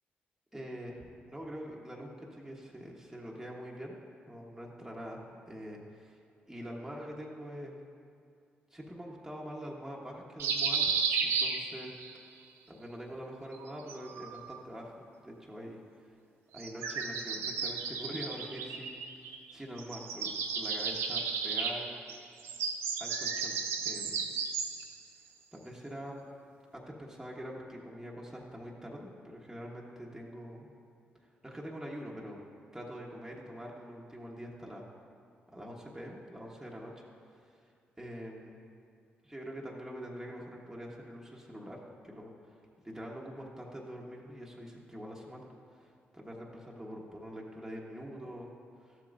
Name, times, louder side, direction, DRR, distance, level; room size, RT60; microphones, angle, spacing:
voice 1, 0.5-3.9 4.3-6.2 6.5-7.8 8.7-10.9 11.2-11.9 12.3-12.4 12.7-15.8 16.5-22.0 23.0-23.6 23.8-24.3 25.5-26.2 26.7-30.7 31.4-32.4 32.7-34.8 35.5-36.9 37.3-37.7 38.0-38.6 39.2-42.6 42.8-45.4 45.7-49.0, equal, 5° right, -3 dB, 1.3 m, -44 dB
sound 1, 10.4-12.1 13.5-14.6 16.5-19.5 19.8-25.0, right 5 dB, 85° right, 0.7 m, -34 dB
12.5 x 7.5 x 2.6 m, 2.3 s
supercardioid pair, 55°, 4 cm